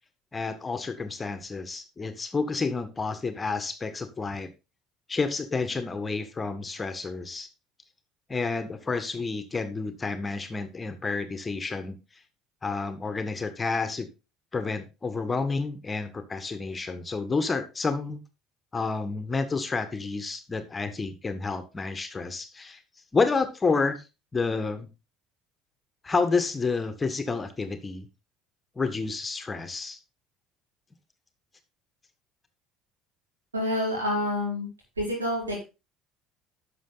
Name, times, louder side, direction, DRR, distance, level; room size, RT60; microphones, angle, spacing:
voice 1, 0.3-4.5 5.1-7.5 8.3-12.0 12.6-14.1 14.5-18.2 18.7-22.8 23.1-24.1 24.3-24.9 26.0-28.1 28.7-30.0, left 4 dB, 25° left, 9 dB, 1.6 m, -29 dB
voice 2, 33.5-34.7 35.0-35.6, left 1 dB, 90° right, -2 dB, 4.3 m, -28 dB
11.5 x 6.5 x 4.0 m, 0.28 s
hypercardioid pair, 60°, 0 cm